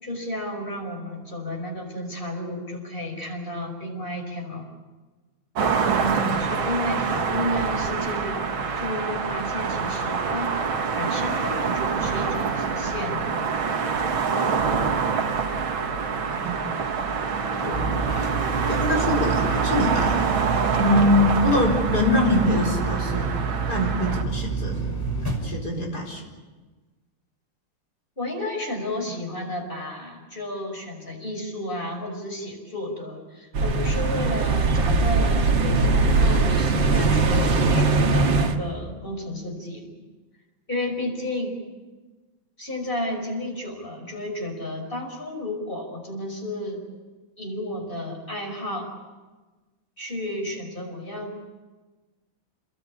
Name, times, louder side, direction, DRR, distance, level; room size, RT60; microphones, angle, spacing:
voice 1, 0.0-4.7 5.7-10.5 10.9-13.4 28.2-40.0 40.7-41.6 42.6-46.8 47.4-48.9 50.0-51.5, left 1 dB, 25° left, 2 dB, 5.6 m, -32 dB
sound 1, 5.5-24.2, right 5 dB, 90° right, 2.5 m, -26 dB
voice 2, 17.6-18.0 18.7-23.3 23.7-24.9 25.4-26.2, left 1 dB, 50° left, -1 dB, 5.1 m, -24 dB
sound 2, 17.7-25.5, right 5 dB, 10° left, 5.6 m, -28 dB
sound 3, 33.5-38.6, right 3 dB, 75° right, 2.4 m, -20 dB
29.0 x 21.5 x 8.6 m, 1.3 s
omnidirectional pair, 2.1 m